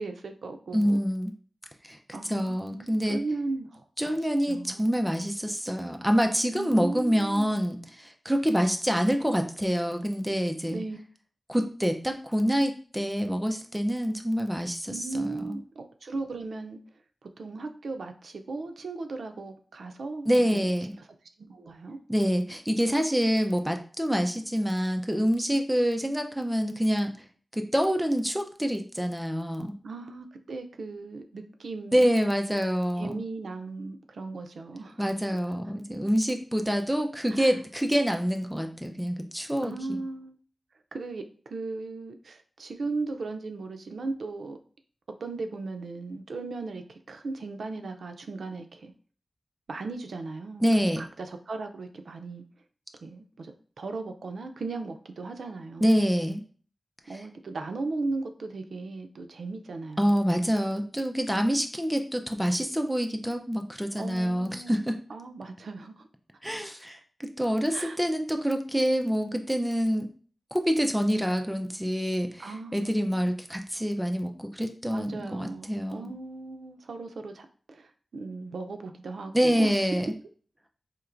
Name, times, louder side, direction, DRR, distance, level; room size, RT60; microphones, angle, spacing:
voice 1, 0.0-1.0 2.1-4.2 4.5-5.0 6.5-7.5 10.7-11.0 14.9-16.8 17.2-20.6 21.4-22.0 29.8-32.1 33.0-35.0 37.3-37.6 39.6-40.4 40.9-44.6 45.2-48.9 49.7-50.6 51.0-52.4 53.0-56.0 57.1-60.2 64.0-64.7 65.1-66.1 67.7-68.0 72.4-73.3 74.9-80.0, right 3 dB, 90° right, 7 dB, 0.4 m, -37 dB
voice 2, 0.7-1.3 1.8-2.0 2.2-3.2 4.0-10.8 11.5-15.6 20.3-20.9 22.1-27.1 27.5-29.7 31.9-33.2 35.0-40.0 50.6-51.0 55.8-56.4 57.1-57.2 60.0-65.0 66.4-70.1 70.5-76.1 79.3-80.1, equal, 5° right, 5 dB, 0.5 m, -26 dB
4.4 x 2.9 x 2.5 m, 0.42 s
wide cardioid pair, 120°, 0 cm